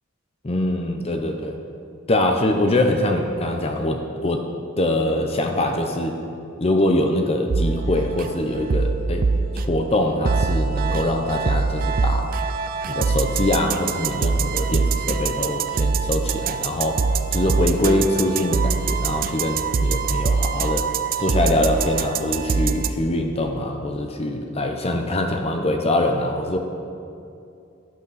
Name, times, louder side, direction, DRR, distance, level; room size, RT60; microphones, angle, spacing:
voice 1, 0.4-1.6 2.1-4.4 4.8-6.2 6.6-9.3 9.5-12.3 12.9-17.0 17.3-20.9 21.2-26.6, left 1 dB, 30° left, 4 dB, 0.7 m, -23 dB
sound 1, 7.5-22.9, right 4 dB, 45° right, 0.4 m, -24 dB
12.5 x 9.2 x 4.1 m, 2.6 s
head